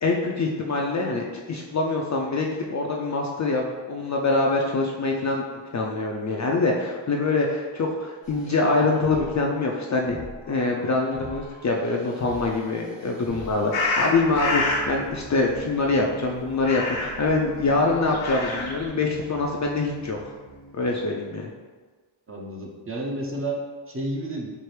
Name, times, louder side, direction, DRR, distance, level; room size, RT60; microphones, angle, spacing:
voice 1, 0.0-5.4 5.7-20.2 20.7-21.5, left 3 dB, 40° left, -1 dB, 0.4 m, -24 dB
sound 1, 8.2-14.1, right 1 dB, 50° right, 1.0 m, -43 dB
sound 2, 13.7-14.9 16.6-17.3 18.0-18.9, left 2 dB, 70° left, 0.8 m, -26 dB
sound 3, 14.2-21.0, right 1 dB, 80° right, 1.0 m, -44 dB
voice 2, 22.3-24.5, right 1 dB, 25° right, -2 dB, 0.7 m, -31 dB
4.5 x 2.5 x 3.2 m, 1.4 s
cardioid pair, 90°, 48 cm